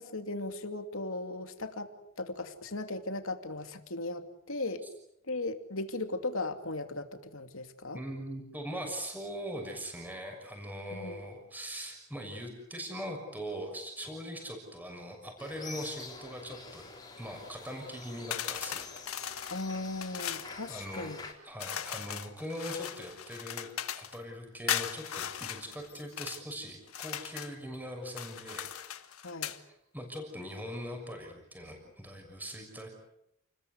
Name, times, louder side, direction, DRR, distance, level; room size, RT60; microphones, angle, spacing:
voice 1, 0.0-4.9 5.2-8.0 10.9-11.2 19.5-21.2 29.2-29.5, left 2 dB, 70° left, 7 dB, 2.7 m, -37 dB
voice 2, 7.9-16.9 17.2-18.9 20.7-21.2 21.4-28.7 29.9-32.9, equal, 10° right, 3 dB, 6.3 m, -41 dB
sound 1, 15.4-21.3, left 4 dB, 20° left, 4.0 m, -47 dB
sound 2, 18.3-20.5 21.6-24.2 24.7-26.4 26.9-27.6 28.1-29.6, left 9 dB, 85° left, 1.7 m, -38 dB
30.0 x 21.0 x 8.3 m, 0.82 s
head